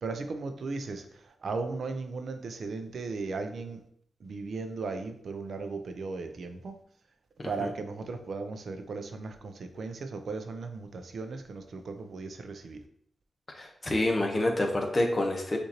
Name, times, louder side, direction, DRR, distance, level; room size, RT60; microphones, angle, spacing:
voice 1, 0.0-3.8 4.2-6.7 7.4-12.8, right 3 dB, 70° right, 7 dB, 0.6 m, -36 dB
voice 2, 13.5-15.6, left 1 dB, 35° left, 1 dB, 1.0 m, -27 dB
6.4 x 2.7 x 2.9 m, 0.65 s
cardioid pair, 70°, 0 cm